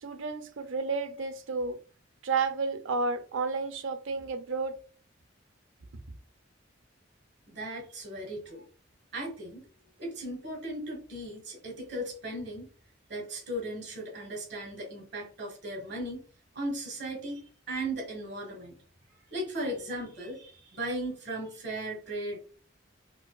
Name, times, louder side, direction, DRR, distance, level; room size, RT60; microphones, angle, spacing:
voice 1, 0.0-1.8 2.2-4.8, right 4 dB, 70° right, 0.4 m, -31 dB
voice 2, 7.5-8.6 9.1-9.6 10.0-12.7 13.1-16.2 16.5-18.8 19.3-22.4, right 1 dB, 55° right, 1.3 m, -37 dB
4.4 x 2.4 x 2.2 m
head